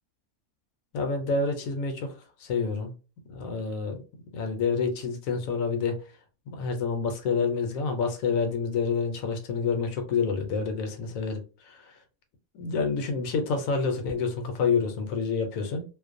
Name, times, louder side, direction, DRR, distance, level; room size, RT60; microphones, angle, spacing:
voice 1, 0.9-2.1 2.4-2.9 3.3-4.0 4.3-6.0 6.5-12.0 12.5-15.8, left 5 dB, 70° left, 0.9 m, -28 dB
2.5 x 2.1 x 2.5 m
omnidirectional pair, 1.6 m